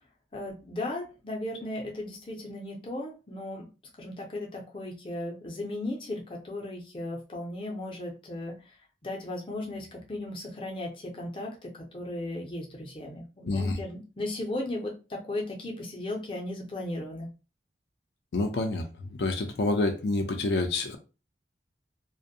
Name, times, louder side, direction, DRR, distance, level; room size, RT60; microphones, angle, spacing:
voice 1, 0.3-3.7 4.0-8.6 9.0-17.3, left 1 dB, 30° left, 0.6 m, -36 dB
voice 2, 13.5-13.8 18.3-21.0, left 2 dB, 70° left, 0.4 m, -28 dB
2.5 x 2.2 x 2.6 m
head